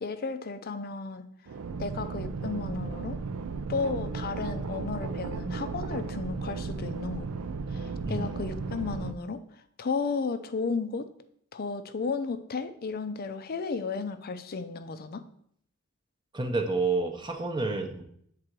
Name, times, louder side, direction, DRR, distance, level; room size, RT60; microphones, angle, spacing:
voice 1, 0.0-1.3 1.8-3.2 3.7-7.3 7.7-9.4 9.8-11.1 11.5-15.2, left 4 dB, 45° left, 10 dB, 0.5 m, -33 dB
sound 1, 1.5-9.1, right 4 dB, 80° right, 0.4 m, -35 dB
voice 2, 16.3-18.0, right 3 dB, 20° right, 3 dB, 0.7 m, -29 dB
7.6 x 3.8 x 4.5 m, 0.68 s
head